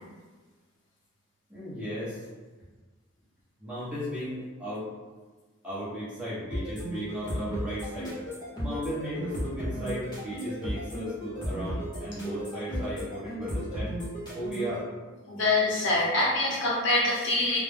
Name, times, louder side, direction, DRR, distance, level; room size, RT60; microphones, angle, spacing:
voice 1, 1.5-2.3 3.6-4.9 5.6-8.2 8.6-13.9 14.3-14.9, equal, 5° right, -11 dB, 0.9 m, -36 dB
sound 1, 6.5-14.8, equal, 20° left, 0.8 m, -34 dB
voice 2, 15.3-17.6, left 2 dB, 60° left, -5 dB, 0.7 m, -25 dB
2.3 x 2.1 x 3.4 m, 1.3 s
head